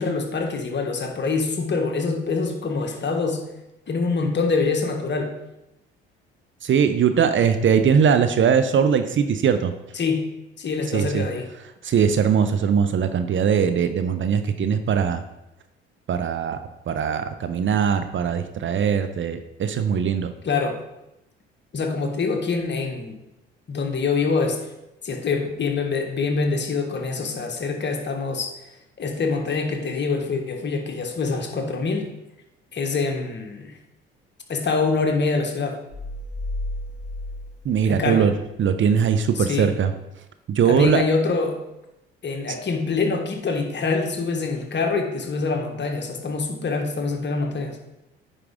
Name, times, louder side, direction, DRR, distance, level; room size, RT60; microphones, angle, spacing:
voice 1, 0.0-3.4 3.9-5.3 9.9-10.3 10.6-11.5 20.4-20.8 21.7-23.2 23.7-24.7 25.0-28.5 29.0-32.1 32.7-33.7 34.5-35.8 37.8-38.3 39.3-39.8 40.6-41.6 42.2-47.8, left 4 dB, 40° left, 3 dB, 1.5 m, -25 dB
voice 2, 6.6-9.7 10.9-11.2 11.8-15.2 16.1-16.6 16.9-20.3 37.6-38.3 38.6-39.9 40.5-41.0, right 7 dB, 40° right, 10 dB, 0.7 m, -20 dB
sound 1, 35.9-38.8, left 1 dB, 85° right, 2.5 m, -33 dB
9.4 x 4.9 x 3.7 m, 0.89 s
hypercardioid pair, 55°, 29 cm